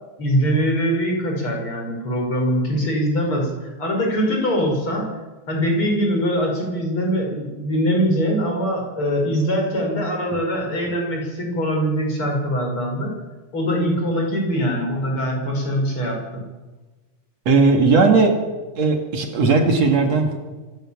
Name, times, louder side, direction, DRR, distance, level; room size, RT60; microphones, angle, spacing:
voice 1, 0.2-5.1 5.5-13.1 13.5-16.4, equal, 45° left, 1 dB, 6.8 m, -22 dB
voice 2, 17.5-18.4 18.8-20.4, right 4 dB, 60° right, 3 dB, 3.4 m, -17 dB
26.5 x 18.0 x 7.4 m, 1.2 s
omnidirectional pair, 3.4 m